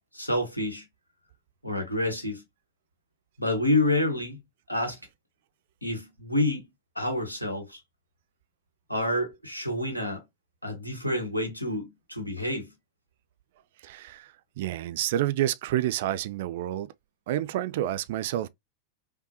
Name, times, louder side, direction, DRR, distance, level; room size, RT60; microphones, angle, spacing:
voice 1, 0.1-0.9 1.6-2.4 3.4-4.4 4.7-5.0 5.8-6.7 6.9-7.8 8.9-10.2 10.6-12.7, left 1 dB, 85° left, 1.1 m, -28 dB
voice 2, 13.8-16.9 17.3-18.5, right 13 dB, 55° right, 0.3 m, -29 dB
5.4 x 2.1 x 2.7 m
figure-of-eight pair, 90°, 0 cm